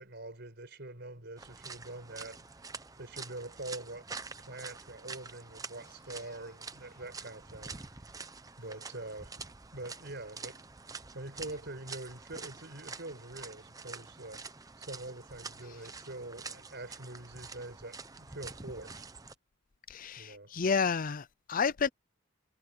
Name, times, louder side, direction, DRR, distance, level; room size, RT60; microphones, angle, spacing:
voice 1, 0.0-4.1 4.4-8.2 8.6-9.5 9.7-19.0 20.2-20.5, right 2 dB, 55° right, 5.0 m, -45 dB
sound 1, 1.4-19.3, right 4 dB, 15° right, 0.8 m, -47 dB
voice 2, 19.9-21.9, left 5 dB, 45° left, 0.5 m, -30 dB
head